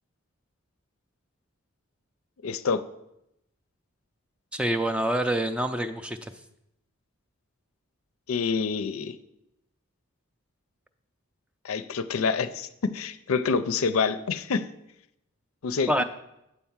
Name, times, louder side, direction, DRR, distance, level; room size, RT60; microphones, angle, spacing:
voice 1, 2.4-2.8 8.3-9.2 11.6-14.7 15.6-16.0, left 5 dB, 80° left, 12 dB, 0.5 m, -27 dB
voice 2, 4.5-6.3 15.9-16.0, right 1 dB, 5° right, 7 dB, 0.3 m, -26 dB
8.2 x 4.6 x 7.2 m, 0.84 s
head